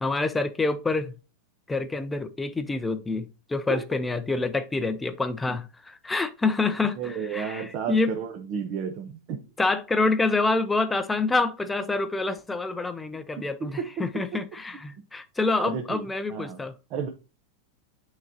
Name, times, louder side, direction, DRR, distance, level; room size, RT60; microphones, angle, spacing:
voice 1, 0.0-1.1 1.7-8.1 9.6-16.7, left 3 dB, 10° left, 0.4 m, -27 dB
voice 2, 7.0-9.5 13.4-14.4 15.0-15.1 15.6-16.6 16.9-17.1, right 7 dB, 35° right, 0.8 m, -33 dB
9.0 x 3.8 x 2.8 m
supercardioid pair, 160°, 0 cm